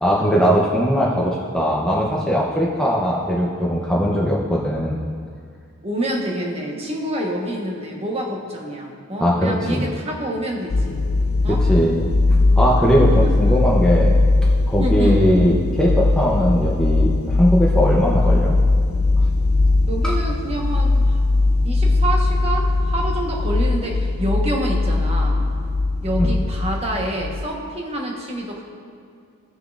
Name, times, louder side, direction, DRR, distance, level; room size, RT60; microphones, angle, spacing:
voice 1, 0.0-5.0 9.2-9.9 11.7-12.1 12.6-14.2 14.7-18.5 26.2-26.3, equal, 5° left, -4 dB, 0.7 m, -19 dB
voice 2, 5.8-11.0 11.4-11.6 13.2-13.5 14.8-15.3 19.9-21.2 21.6-25.4 26.0-28.6, right 1 dB, 30° right, -1 dB, 1.2 m, -27 dB
sound 1, 10.7-27.5, left 2 dB, 75° left, 0.5 m, -19 dB
16.0 x 6.5 x 2.5 m, 2.3 s
head